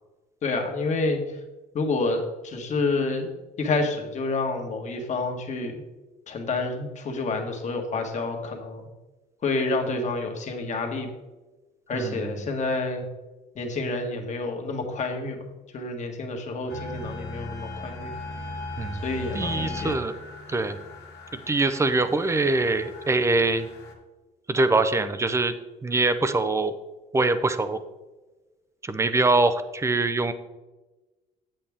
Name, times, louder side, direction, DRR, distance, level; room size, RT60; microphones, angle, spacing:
voice 1, 0.4-1.4 1.7-3.3 3.6-5.8 6.3-8.9 9.4-11.1 11.9-13.0 13.5-15.4 15.7-18.1 19.0-19.9, left 3 dB, 45° left, 3 dB, 1.5 m, -28 dB
voice 2, 11.9-12.3 18.8-19.0 19.3-20.2 20.5-20.8 21.3-23.7 24.5-25.5 25.8-26.8 27.1-27.8 28.8-30.3, right 3 dB, 15° right, 11 dB, 0.6 m, -23 dB
sound 1, 16.7-23.9, left 2 dB, 85° left, 1.6 m, -38 dB
8.3 x 7.8 x 3.6 m, 1.2 s
cardioid pair, 110°, 17 cm